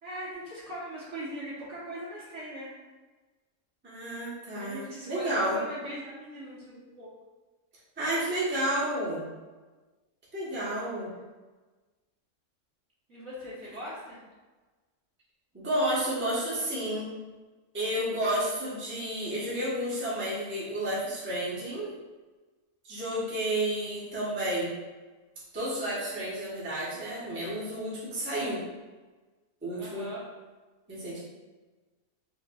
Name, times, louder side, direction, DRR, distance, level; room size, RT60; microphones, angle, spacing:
voice 1, 0.0-2.7 4.6-7.1 13.1-14.2 29.8-30.2, equal, 50° right, -8 dB, 1.3 m, -40 dB
voice 2, 3.8-5.6 8.0-9.2 10.3-11.1 15.5-17.1 17.7-21.9 22.8-24.7 25.5-28.7 29.6-30.1 30.9-31.2, right 1 dB, 10° right, -8 dB, 0.8 m, -31 dB
4.8 x 3.0 x 2.3 m, 1.3 s
omnidirectional pair, 1.8 m